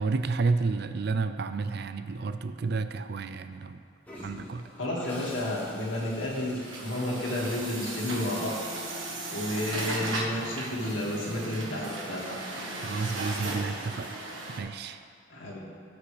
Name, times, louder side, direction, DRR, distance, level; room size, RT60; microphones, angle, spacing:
voice 1, 0.0-3.8 4.2-4.6 12.8-14.1 14.6-15.0, right 4 dB, 55° right, 10 dB, 0.4 m, -30 dB
Toilet flush, 4.0-9.1, left 1 dB, 10° left, 1.6 m, -47 dB
voice 2, 4.8-8.6 9.3-12.3 15.3-15.6, left 1 dB, 75° left, -4 dB, 2.0 m, -31 dB
Screaming, 6.6-10.9, left 1 dB, 50° left, 2.0 m, -49 dB
Truck, 6.6-14.6, right 2 dB, 85° right, 1.4 m, -36 dB
17.5 x 6.1 x 3.3 m, 2.2 s
head